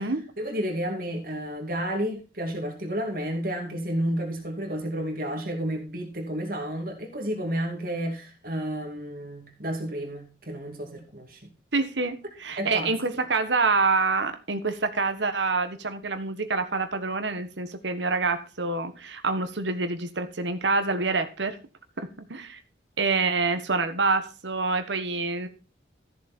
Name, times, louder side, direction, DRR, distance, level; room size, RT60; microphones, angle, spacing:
voice 1, 0.0-11.5 12.6-12.9, equal, 50° right, 2.7 m, -31 dB
voice 2, 11.7-21.6 22.0-22.6 23.0-25.5, right 3 dB, 80° right, 1.4 m, -26 dB
14.0 x 7.1 x 4.4 m
head